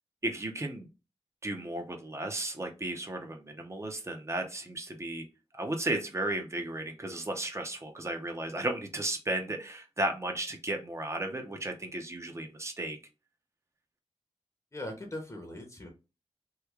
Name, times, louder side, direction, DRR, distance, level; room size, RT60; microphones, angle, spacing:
voice 1, 0.2-0.9 1.4-5.2 5.6-13.0, right 1 dB, 25° right, 4 dB, 0.7 m, -34 dB
voice 2, 14.7-15.9, left 1 dB, 30° left, 2 dB, 0.8 m, -40 dB
3.1 x 2.2 x 3.5 m, 0.30 s
wide cardioid pair, 100°, 11 cm